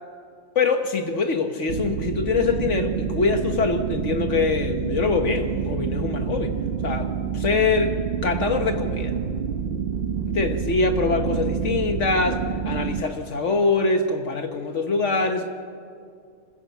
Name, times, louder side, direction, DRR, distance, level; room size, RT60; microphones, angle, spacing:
voice 1, 0.5-6.6 6.8-9.1 10.3-15.5, left 4 dB, 60° left, 6 dB, 1.4 m, -24 dB
sound 1, 1.7-13.0, right 7 dB, 50° right, 0.8 m, -28 dB
26.0 x 16.0 x 7.1 m, 2.3 s
omnidirectional pair, 1.5 m